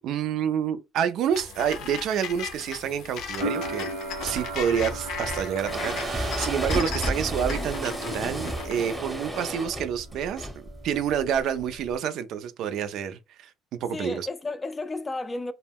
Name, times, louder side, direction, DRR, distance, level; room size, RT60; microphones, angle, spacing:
voice 1, 0.0-3.9 4.2-10.5 10.8-13.5 13.8-14.3, right 8 dB, 70° right, 0.3 m, -28 dB
sound 1, 1.3-9.0, left 6 dB, 75° left, 0.6 m, -37 dB
sound 2, 3.4-10.2 10.5-11.3, right 2 dB, 85° right, 0.8 m, -37 dB
sound 3, 4.0-11.9, equal, 10° right, 0.7 m, -33 dB
voice 2, 9.3-9.8 13.9-15.5, left 2 dB, 25° left, 0.4 m, -33 dB
2.1 x 2.1 x 3.3 m
supercardioid pair, 80°, 0 cm